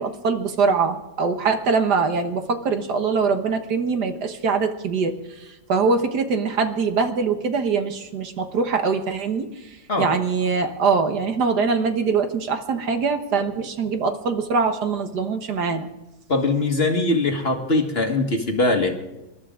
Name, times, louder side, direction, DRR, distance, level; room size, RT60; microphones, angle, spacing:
voice 1, 0.0-9.5 10.0-15.9, right 5 dB, 70° right, 7 dB, 1.8 m, -23 dB
voice 2, 16.3-19.0, left 2 dB, 35° left, 4 dB, 1.6 m, -21 dB
27.0 x 12.5 x 3.7 m, 0.99 s
omnidirectional pair, 1.9 m